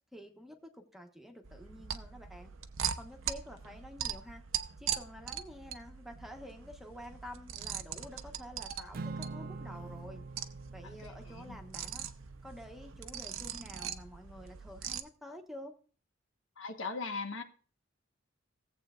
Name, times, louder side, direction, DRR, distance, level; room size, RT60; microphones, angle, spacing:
voice 1, 0.1-2.5 2.9-4.4 4.8-10.2 10.7-12.1 12.4-15.7, equal, ahead, 4 dB, 1.1 m, -49 dB
sound 1, 1.4-15.0, right 9 dB, 80° right, 0.7 m, -41 dB
Acoustic guitar / Strum, 8.9-13.4, right 3 dB, 50° right, 0.4 m, -46 dB
voice 2, 10.8-11.6 16.6-17.4, left 4 dB, 70° left, 5 dB, 1.2 m, -40 dB
17.0 x 7.9 x 2.4 m, 0.40 s
head